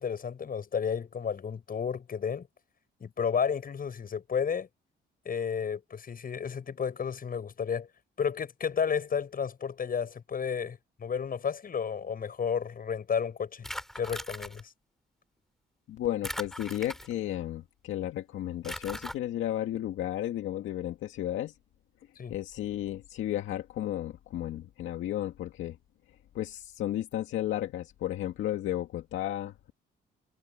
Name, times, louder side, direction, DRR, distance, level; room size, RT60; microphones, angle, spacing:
voice 1, 0.0-2.5 3.0-4.7 5.2-7.9 8.2-13.7 14.0-14.6 22.2-22.3, left 7 dB, 45° left, 7.6 m, -32 dB
sound 1, 13.6-14.6 16.2-17.4 18.6-19.2, equal, ahead, 7.7 m, -39 dB
voice 2, 15.9-21.6 22.3-25.8 26.3-29.7, left 12 dB, 80° left, 1.9 m, -33 dB
cardioid pair, 90°, 20 cm